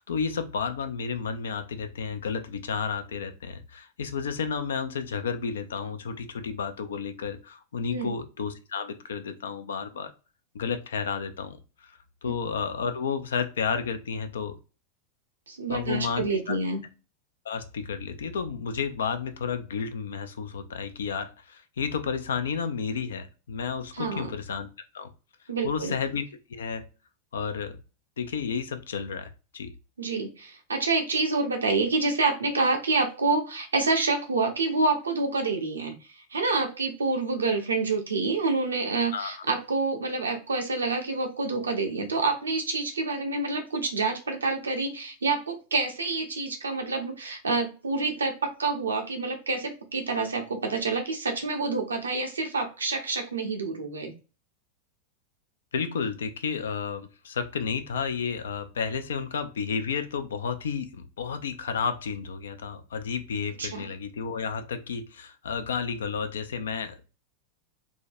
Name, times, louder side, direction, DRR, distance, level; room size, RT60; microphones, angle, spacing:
voice 1, 0.0-10.1 10.5-14.6 15.7-16.6 17.4-24.7 24.9-25.1 25.6-26.2 26.5-26.9 27.3-27.8 28.2-29.7 39.1-39.4 55.7-67.0, left 6 dB, 75° left, 9 dB, 0.5 m, -32 dB
voice 2, 15.5-16.8 23.9-24.3 25.5-25.9 30.0-54.1 63.6-63.9, right 3 dB, 85° right, 4 dB, 0.7 m, -27 dB
3.7 x 2.2 x 2.6 m, 0.32 s
hypercardioid pair, 95°, 0 cm